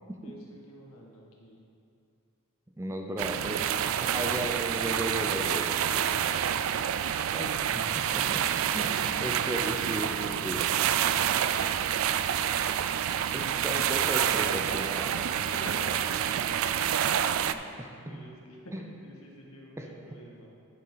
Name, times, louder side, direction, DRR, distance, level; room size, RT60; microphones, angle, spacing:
voice 1, 0.2-1.6 3.4-4.4 5.2-6.3 7.2-7.6 8.5-9.1 10.4-12.1 15.5-16.1 17.0-17.1 17.6-20.5, equal, 75° left, -2 dB, 1.6 m, -47 dB
voice 2, 2.8-3.6 4.0-5.7 7.3-7.4 8.1-8.9 9.2-10.6 13.3-15.3 17.5-18.2 18.7-18.8 19.8-19.9, right 1 dB, 10° right, 2 dB, 0.5 m, -35 dB
sound 1, 3.2-17.5, right 9 dB, 65° right, 0.3 m, -28 dB
10.5 x 7.1 x 3.9 m, 2.5 s
head